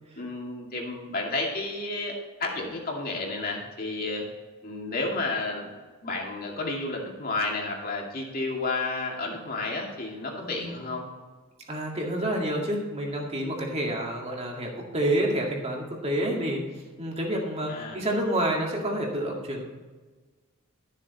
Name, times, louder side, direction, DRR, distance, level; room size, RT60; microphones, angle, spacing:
voice 1, 0.2-2.1 2.4-4.2 4.6-5.7 6.0-11.0 17.7-18.0, left 3 dB, 40° left, -1 dB, 2.4 m, -31 dB
voice 2, 10.4-10.8 11.7-16.6 17.0-19.6, right 1 dB, 30° right, 0 dB, 2.2 m, -28 dB
13.0 x 7.5 x 4.2 m, 1.3 s
head